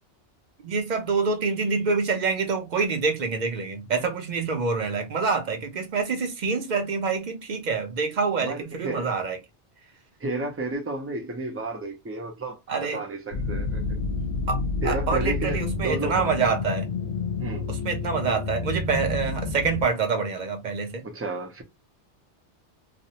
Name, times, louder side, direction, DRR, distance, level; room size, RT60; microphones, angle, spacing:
voice 1, 0.6-9.4 12.7-13.0 14.5-14.6 14.8-16.9 17.7-21.0, right 4 dB, 50° right, 0.7 m, -26 dB
voice 2, 8.4-9.1 10.2-14.0 14.8-16.4 17.4-17.7 21.0-21.6, right 2 dB, 20° right, 0.4 m, -32 dB
sound 1, 13.3-19.8, left 3 dB, 75° left, 0.9 m, -29 dB
2.5 x 2.0 x 2.8 m
omnidirectional pair, 1.1 m